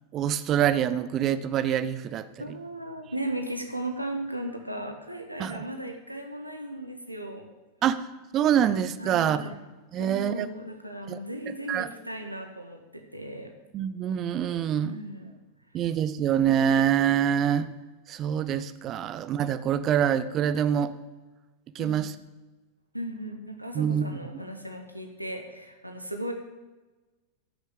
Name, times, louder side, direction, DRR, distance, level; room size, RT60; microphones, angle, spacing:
voice 1, 0.1-2.3 5.4-5.6 7.8-8.0 8.3-9.5 9.9-10.5 11.1-11.2 11.7-11.9 13.7-15.0 15.7-17.7 18.1-20.9 21.7-22.1 23.7-24.1, right 9 dB, 30° right, 13 dB, 0.7 m, -25 dB
voice 2, 2.4-7.5 9.0-9.6 10.0-13.5 14.7-15.3 15.7-15.8 21.8-22.0 22.9-26.3, right 1 dB, 90° right, 4 dB, 1.2 m, -36 dB
14.0 x 6.5 x 6.4 m, 1.2 s
figure-of-eight pair, 90°, 0 cm